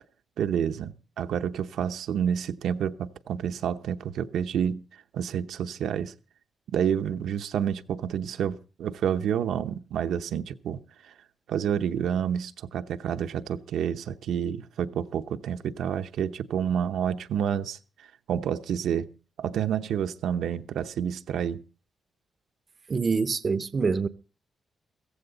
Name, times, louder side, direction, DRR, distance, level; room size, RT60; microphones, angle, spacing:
voice 1, 0.4-4.8 5.1-6.1 6.7-11.1 11.5-17.8 18.3-19.1 19.4-21.6, right 8 dB, 75° right, 0.8 m, -29 dB
voice 2, 22.9-24.1, right 4 dB, 30° right, 0.6 m, -25 dB
15.5 x 15.0 x 3.9 m
wide cardioid pair, 160°, 0 cm